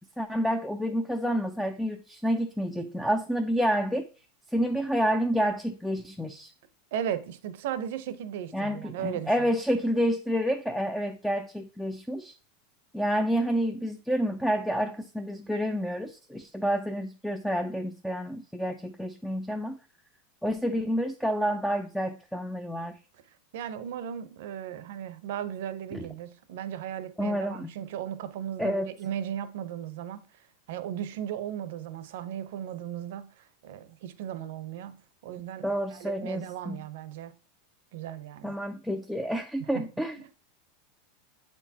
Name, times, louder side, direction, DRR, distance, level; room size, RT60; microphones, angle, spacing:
voice 1, 0.2-4.1 4.5-6.5 8.5-12.3 12.9-19.8 20.4-23.0 25.9-26.1 27.2-27.7 28.6-28.9 35.6-36.8 38.4-40.2, equal, ahead, 0.3 m, -29 dB
voice 2, 6.9-9.5 23.5-30.2 30.7-35.0 35.2-35.6 35.9-37.3 37.9-38.5 39.6-39.9 40.2-40.3, right 10 dB, 70° right, 0.6 m, -36 dB
7.6 x 4.5 x 2.8 m
supercardioid pair, 160°, 0 cm